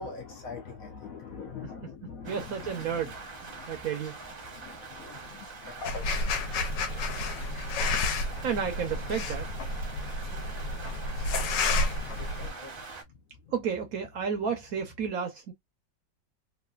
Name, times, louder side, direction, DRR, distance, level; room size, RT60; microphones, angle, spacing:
voice 1, 0.0-3.1 3.5-3.9 4.5-8.2 11.9-13.0 13.4-13.5, left 5 dB, 65° left, 0.9 m, -44 dB
Rain, 2.2-13.0, right 4 dB, 40° right, 0.8 m, -44 dB
voice 2, 2.2-3.1 3.7-4.2 8.4-9.5 13.5-15.5, right 7 dB, 65° right, 0.9 m, -31 dB
sound 1, 5.8-12.5, left 2 dB, 80° left, 1.3 m, -30 dB
3.1 x 2.5 x 2.3 m
omnidirectional pair, 1.9 m